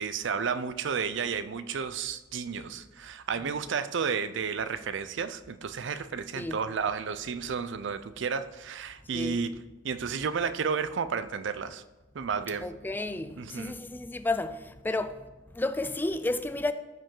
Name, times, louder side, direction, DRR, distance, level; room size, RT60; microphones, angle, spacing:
voice 1, 0.0-9.6 9.8-11.8 12.1-12.7 13.4-13.8, right 6 dB, 65° right, 0.5 m, -32 dB
voice 2, 12.6-15.2 15.5-16.7, left 2 dB, 10° left, 0.3 m, -32 dB
14.5 x 5.3 x 3.8 m
head